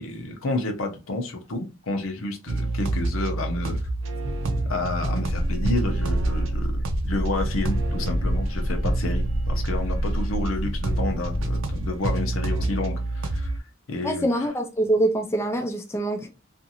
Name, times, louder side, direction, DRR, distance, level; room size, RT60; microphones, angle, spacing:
voice 1, 0.0-3.8 4.7-13.5 13.9-14.5, left 2 dB, 85° left, 0.7 m, -30 dB
sound 1, 2.5-13.6, right 2 dB, 75° right, 0.6 m, -28 dB
sound 2, 5.2-12.8, equal, 25° right, 0.7 m, -29 dB
voice 2, 14.0-16.3, right 1 dB, 15° left, 0.3 m, -24 dB
2.5 x 2.5 x 2.7 m
head